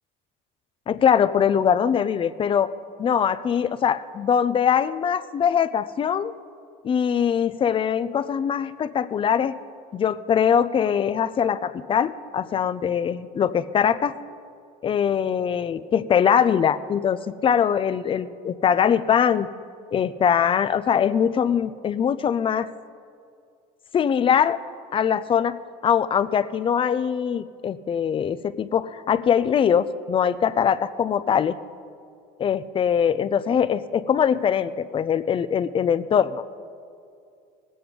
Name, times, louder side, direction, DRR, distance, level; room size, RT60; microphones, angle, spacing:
voice 1, 0.9-2.7 3.0-6.3 6.8-9.5 9.9-14.1 14.8-19.5 19.9-22.7 23.9-24.6 24.9-25.6 25.8-31.6 32.4-36.4, left 8 dB, 25° left, 14 dB, 0.5 m, -22 dB
19.5 x 7.9 x 5.1 m, 2.4 s
supercardioid pair, 115°, 20 cm